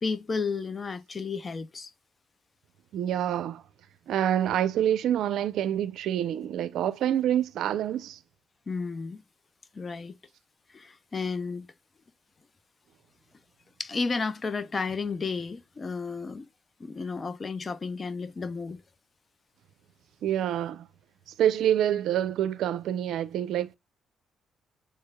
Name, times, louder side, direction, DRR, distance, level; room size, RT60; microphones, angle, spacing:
voice 1, 0.0-1.9 8.7-9.2 9.7-10.1 10.7-11.7 13.8-16.5 16.8-18.8, left 4 dB, 35° left, 0.6 m, -32 dB
voice 2, 2.9-3.6 4.1-8.2 20.2-20.9 21.4-23.7, right 10 dB, 80° right, 0.5 m, -27 dB
6.9 x 3.3 x 2.2 m
cardioid pair, 90°, 0 cm